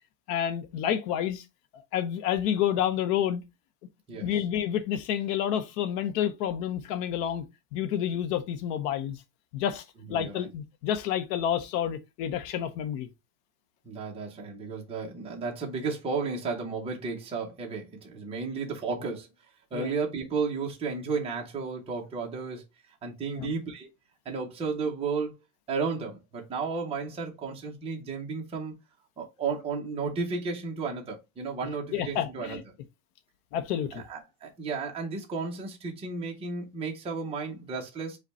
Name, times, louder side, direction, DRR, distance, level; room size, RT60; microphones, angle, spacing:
voice 1, 0.3-1.4 1.7-3.4 4.1-7.4 7.7-9.2 9.5-9.8 10.1-13.1 19.7-19.9 23.3-23.5 31.9-32.6 33.5-34.0, left 10 dB, 80° left, 0.8 m, -29 dB
voice 2, 10.1-10.5 13.8-19.3 19.7-22.6 23.0-23.9 24.2-25.3 25.7-28.7 29.2-32.6 33.9-38.2, right 4 dB, 15° right, 0.7 m, -33 dB
5.1 x 2.2 x 4.0 m
cardioid pair, 180°, 47 cm